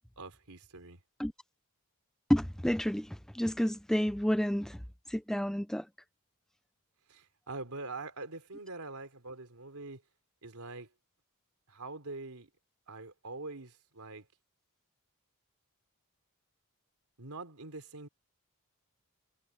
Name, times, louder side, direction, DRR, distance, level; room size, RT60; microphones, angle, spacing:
voice 1, 0.2-1.0 7.1-10.0 10.4-10.9 11.7-12.5 12.9-14.3 17.2-18.1, right 3 dB, 80° right, 3.2 m, -44 dB
voice 2, 2.3-4.8 5.1-5.8, equal, ahead, 0.4 m, -30 dB
head